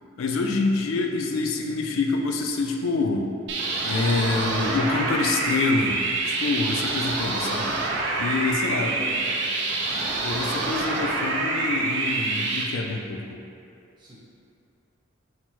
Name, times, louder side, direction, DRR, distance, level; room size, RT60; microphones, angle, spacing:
voice 1, 0.2-3.3 3.8-7.8 8.2-9.1 10.2-13.4, left 3 dB, 75° left, 2 dB, 0.4 m, -26 dB
sound 1, 3.5-12.6, right 3 dB, 60° right, 0.5 m, -26 dB
voice 2, 8.6-9.8 10.6-11.1 14.0-14.2, equal, 25° right, -8 dB, 0.9 m, -41 dB
4.2 x 2.0 x 4.4 m, 2.6 s
head